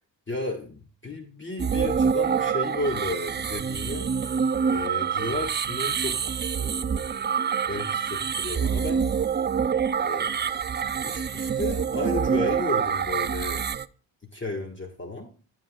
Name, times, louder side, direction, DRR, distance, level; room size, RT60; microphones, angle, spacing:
voice 1, 0.3-4.1 4.7-7.2 7.6-9.0 10.0-13.6 14.3-15.3, left 2 dB, 25° left, 1 dB, 1.5 m, -33 dB
sound 1, 1.6-13.9, right 7 dB, 25° right, 0.3 m, -26 dB
12.5 x 7.7 x 2.3 m, 0.38 s
cardioid pair, 50°, 46 cm